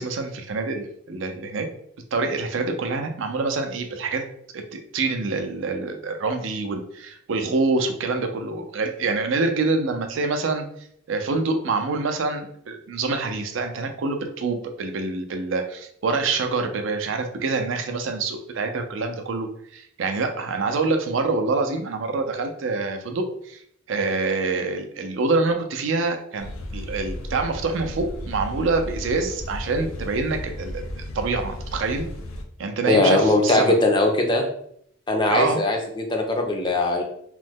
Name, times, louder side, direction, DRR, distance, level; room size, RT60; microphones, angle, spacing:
voice 1, 0.0-1.7 2.1-4.2 4.5-10.7 11.1-23.6 23.9-30.8 31.1-32.0 32.6-33.8 35.3-35.6, right 3 dB, 65° right, 5 dB, 0.4 m, -26 dB
sound 1, 26.4-32.4, left 1 dB, 85° left, 0.5 m, -34 dB
voice 2, 32.9-34.4 35.1-37.0, left 2 dB, 20° left, 2 dB, 0.4 m, -20 dB
3.0 x 2.1 x 3.4 m, 0.70 s
head